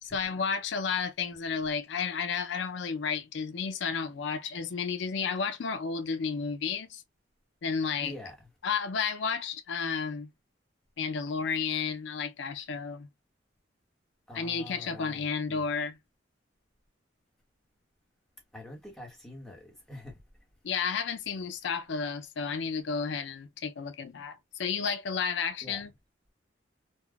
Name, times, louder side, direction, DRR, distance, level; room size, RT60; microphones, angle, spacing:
voice 1, 0.0-7.0 7.6-8.1 8.6-10.3 11.0-13.1 14.3-16.0 20.6-25.9, left 5 dB, 70° left, 0.4 m, -32 dB
voice 2, 8.0-8.5 14.3-15.6 18.5-20.2 25.6-25.9, left 1 dB, 5° left, 0.9 m, -45 dB
3.4 x 2.1 x 2.2 m
head